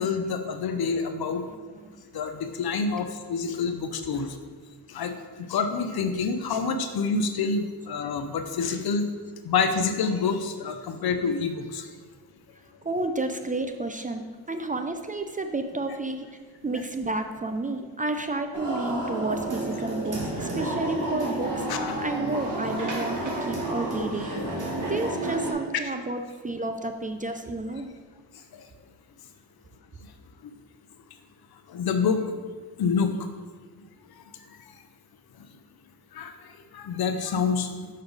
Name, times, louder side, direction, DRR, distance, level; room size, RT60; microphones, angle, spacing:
voice 1, 0.0-1.4 2.1-4.3 4.9-5.1 5.4-9.1 9.4-11.9 21.7-22.0 25.7-25.8 30.4-30.5 31.7-32.2 32.8-33.2 36.1-36.3 36.7-37.7, left 5 dB, 60° left, 8 dB, 0.7 m, -27 dB
voice 2, 1.5-1.9 12.8-14.2 14.5-16.3 16.6-24.3 24.8-27.9, right 2 dB, 20° right, 7 dB, 0.5 m, -31 dB
sound 1, 18.5-25.5, right 1 dB, 45° right, 1.8 m, -30 dB
5.9 x 5.4 x 4.0 m, 1.5 s
cardioid pair, 65°, 43 cm